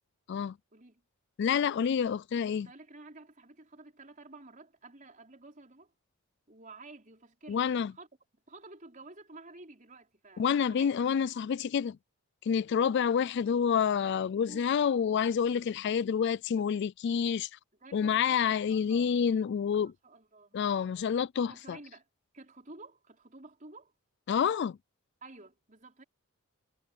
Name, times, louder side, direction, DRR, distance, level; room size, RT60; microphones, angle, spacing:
voice 1, 0.7-1.0 2.5-5.9 6.5-8.1 8.5-11.0 14.5-14.8 17.8-19.1 19.8-21.1 21.5-22.0 22.3-23.9 25.2-26.0, right 3 dB, 35° right, 5.2 m, -52 dB
voice 2, 1.4-2.7 7.5-7.9 10.4-12.0 12.4-17.6 17.9-19.9 20.5-21.8 24.3-24.8, left 7 dB, 50° left, 0.3 m, -28 dB
head